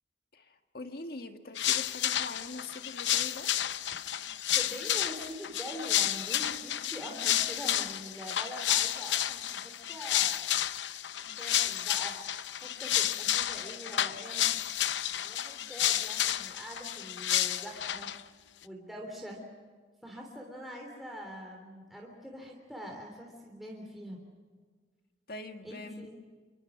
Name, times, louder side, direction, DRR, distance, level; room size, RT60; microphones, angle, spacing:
voice 1, 0.3-3.5 25.3-26.1, left 2 dB, 55° left, 6 dB, 1.9 m, -43 dB
sound 1, 1.6-18.2, left 12 dB, 85° left, 0.8 m, -31 dB
voice 2, 4.5-10.6 11.4-12.2 12.6-14.6 15.1-18.1 18.6-19.4 20.0-24.2 25.6-26.2, equal, ahead, -1 dB, 3.3 m, -44 dB
28.0 x 23.5 x 6.2 m, 1.6 s
head